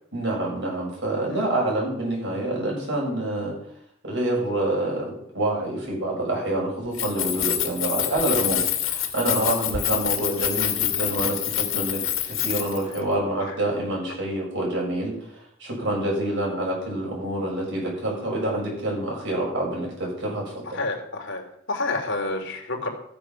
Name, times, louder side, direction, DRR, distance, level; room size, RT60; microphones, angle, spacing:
voice 1, 0.1-3.5 4.0-20.8, right 1 dB, 60° right, -2 dB, 7.0 m, -27 dB
Keys jangling, 6.9-13.0, left 11 dB, 90° left, 2.1 m, -26 dB
voice 2, 20.7-21.4 21.7-22.9, left 3 dB, 60° left, 2 dB, 3.1 m, -29 dB
14.5 x 9.4 x 5.9 m, 0.70 s
head